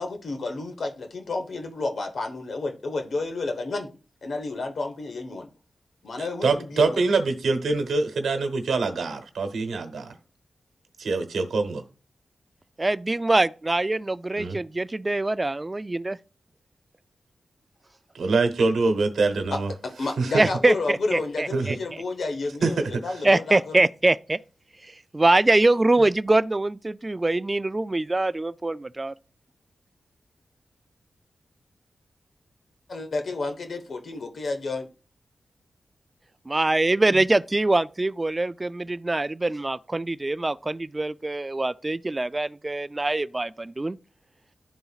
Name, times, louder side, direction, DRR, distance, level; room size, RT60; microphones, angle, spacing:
voice 1, 0.0-3.9 4.2-5.5 6.0-7.0 19.5-23.8 32.9-34.9, left 3 dB, 70° left, 1.1 m, -31 dB
voice 2, 6.2-10.1 11.0-11.8 14.4-14.6 18.1-19.7 20.2-20.5 21.5-21.8 22.6-22.9, right 3 dB, 90° right, 1.0 m, -24 dB
voice 3, 12.8-16.2 20.4-20.7 21.1-21.8 23.2-24.4 25.1-29.1 36.5-44.0, right 2 dB, 30° right, 0.3 m, -23 dB
11.0 x 3.9 x 2.4 m
cardioid pair, 60°, 0 cm